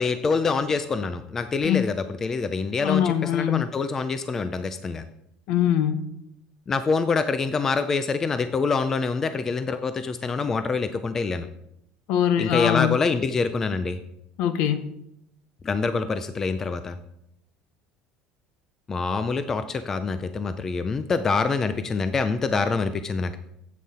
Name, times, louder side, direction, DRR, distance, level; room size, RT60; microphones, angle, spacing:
voice 1, 0.0-5.0 6.7-11.5 12.4-14.0 15.6-16.9 18.9-23.4, left 4 dB, 20° left, 11 dB, 0.4 m, -25 dB
voice 2, 2.8-3.8 5.5-6.0 12.1-13.0 14.4-14.9, left 10 dB, 60° left, 12 dB, 0.9 m, -23 dB
11.0 x 8.4 x 4.2 m, 0.79 s
cardioid pair, 175°, 2 cm